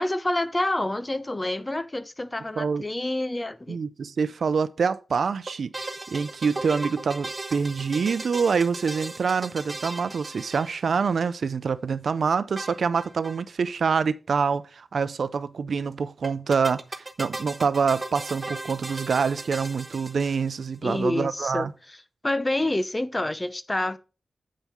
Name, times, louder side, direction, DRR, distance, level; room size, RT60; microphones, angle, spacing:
voice 1, 0.0-3.8 20.8-22.0 22.2-24.0, left 1 dB, 20° left, 0.7 m, -28 dB
voice 2, 3.7-21.7, right 5 dB, 80° right, 0.6 m, -26 dB
sound 1, 5.5-11.2 12.6-13.4 13.7-13.8 13.9-14.0 16.2-20.8, right 2 dB, 30° right, 1.2 m, -37 dB
8.6 x 5.5 x 4.6 m
wide cardioid pair, 75°, 0 cm